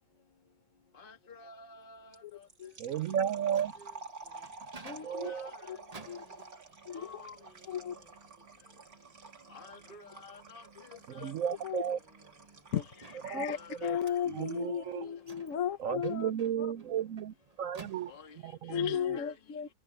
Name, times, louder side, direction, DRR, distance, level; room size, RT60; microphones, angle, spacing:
voice 1, 0.9-2.5 3.8-4.0 5.0-5.8 6.9-7.4 9.5-11.3 13.5-14.0 15.0-15.2 18.1-19.4, left 4 dB, 30° left, 1.9 m, -52 dB
sound 1, 2.1-14.8, right 3 dB, 50° right, 2.9 m, -51 dB
voice 2, 2.8-3.7 5.0-5.5 11.2-12.0 13.2-14.0 14.3-15.1 15.8-18.1 18.4-19.2, right 9 dB, 75° right, 0.7 m, -34 dB
Microwave oven, 3.2-18.6, right 4 dB, 25° right, 1.1 m, -57 dB
voice 3, 4.2-4.5 5.6-6.6 7.7-8.2 10.9-11.0 11.6-12.7 15.5-15.8 16.1-16.4, left 3 dB, 80° left, 7.8 m, -63 dB
voice 4, 4.8-5.3 5.7-5.8 6.1-6.2 6.9-7.2 7.7-7.9 10.9-11.0 11.6-11.8 12.7-16.3 18.7-19.7, left 9 dB, 50° left, 1.1 m, -35 dB
omnidirectional pair, 2.1 m